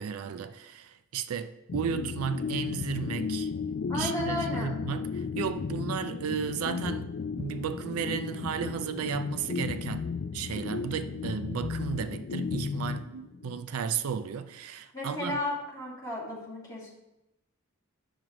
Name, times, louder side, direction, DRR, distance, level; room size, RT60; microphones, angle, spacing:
voice 1, 0.0-3.5 3.9-15.4, right 7 dB, 80° right, 0.4 m, -34 dB
sound 1, 1.7-13.6, left 5 dB, 45° left, 0.3 m, -34 dB
voice 2, 3.9-4.8 14.9-16.9, left 1 dB, 15° left, 2.1 m, -33 dB
8.9 x 6.1 x 3.0 m
head